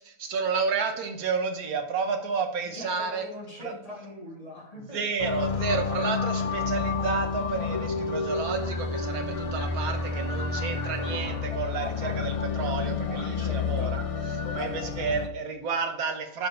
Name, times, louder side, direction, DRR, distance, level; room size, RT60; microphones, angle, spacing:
voice 1, 0.0-3.2 3.6-3.8 4.8-14.0 14.3-16.5, right 5 dB, 75° right, 5 dB, 1.5 m, -31 dB
voice 2, 2.7-5.0 13.4-13.9 14.6-15.0, left 1 dB, 25° left, -4 dB, 3.0 m, -42 dB
sound 1, 5.2-15.3, left 4 dB, 55° left, 0.3 m, -30 dB
10.0 x 6.2 x 3.3 m, 0.78 s
omnidirectional pair, 1.6 m